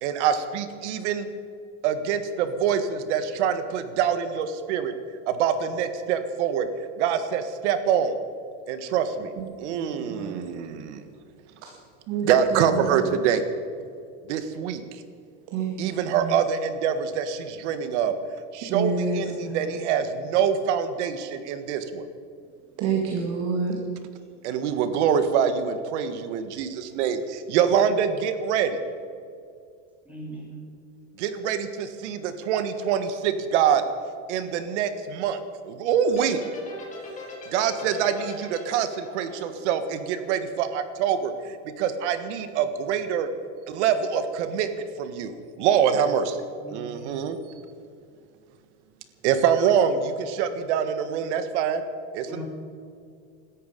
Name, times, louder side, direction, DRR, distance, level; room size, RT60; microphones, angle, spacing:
voice 1, 0.0-1.3 1.8-4.9 5.3-6.7 7.0-8.1 8.7-9.3 9.6-11.0 12.2-13.4 14.3-14.8 15.8-18.1 18.5-22.1 24.4-28.7 31.2-33.8 34.3-36.4 37.5-43.3 43.7-44.7 45.0-45.3 45.6-46.4 46.7-47.4 49.2-51.8 52.1-52.4, right 8 dB, 75° right, 10 dB, 1.8 m, -25 dB
voice 2, 9.4-10.4 11.6-11.7 12.1-13.0 15.5-15.7 16.2-16.3 18.7-19.7 22.8-23.8, right 4 dB, 50° right, 2 dB, 2.0 m, -29 dB
voice 3, 30.0-30.6 46.6-47.2 52.3-52.4, right 2 dB, 5° right, -4 dB, 4.9 m, -40 dB
sound 1, 36.1-40.4, left 4 dB, 20° left, 4.2 m, -40 dB
18.0 x 13.5 x 5.3 m, 2.3 s
supercardioid pair, 155°, 35 cm